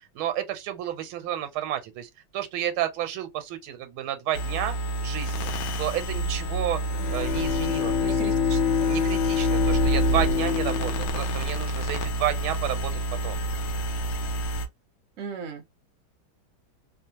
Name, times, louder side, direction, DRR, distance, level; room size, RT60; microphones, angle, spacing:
voice 1, 0.7-1.8 2.3-3.3 3.7-4.7 5.0-5.5 5.8-6.8 7.1-8.1 8.9-12.8 13.2-13.3, right 11 dB, 85° right, 1.4 m, -30 dB
sound 1, 4.3-14.7, right 2 dB, 70° left, 1.2 m, -28 dB
Bowed string instrument, 6.8-12.4, left 9 dB, 90° left, 1.5 m, -27 dB
voice 2, 8.0-9.0 15.2-15.8, right 6 dB, 60° right, 0.8 m, -38 dB
3.3 x 2.0 x 2.8 m
omnidirectional pair, 2.2 m